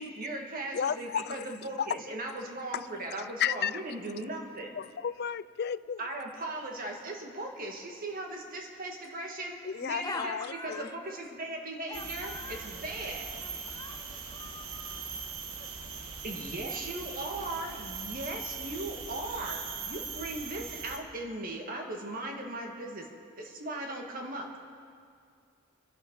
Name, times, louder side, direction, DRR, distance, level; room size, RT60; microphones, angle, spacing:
voice 1, 0.0-4.8 6.0-13.4 16.2-23.1 23.4-24.6, right 2 dB, 40° right, 1 dB, 2.0 m, -38 dB
voice 2, 0.7-1.5 2.7-2.8 3.4-3.7 4.8-6.0 9.6-10.9, left 8 dB, 45° left, 16 dB, 0.4 m, -33 dB
voice 3, 10.0-11.2 11.9-12.8 13.4-15.0 15.6-15.7, left 3 dB, 15° left, 4 dB, 1.1 m, -43 dB
sound 1, 11.9-21.0, right 5 dB, 70° right, 1.5 m, -40 dB
29.5 x 11.0 x 4.0 m, 2.3 s
head